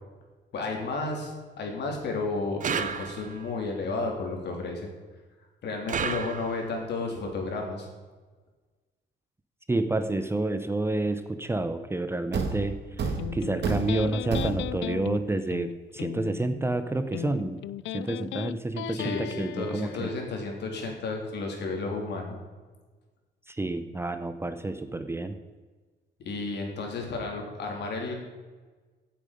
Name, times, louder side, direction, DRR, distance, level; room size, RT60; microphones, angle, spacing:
voice 1, 0.5-4.9 5.6-7.9 18.9-22.4 26.3-28.1, left 3 dB, 65° left, 1 dB, 3.6 m, -32 dB
sound 1, 2.6-3.5 5.9-6.8, right 7 dB, 45° right, 0.8 m, -32 dB
voice 2, 9.7-17.6 17.9-20.1 23.5-25.4, right 2 dB, 15° right, 9 dB, 0.7 m, -29 dB
Thump thud, 12.3-15.0, right 4 dB, 65° right, 2.2 m, -31 dB
Electric guitar, 13.2-20.2, left 13 dB, 85° left, 0.4 m, -37 dB
16.0 x 8.6 x 5.4 m, 1.4 s
cardioid pair, 140°, 19 cm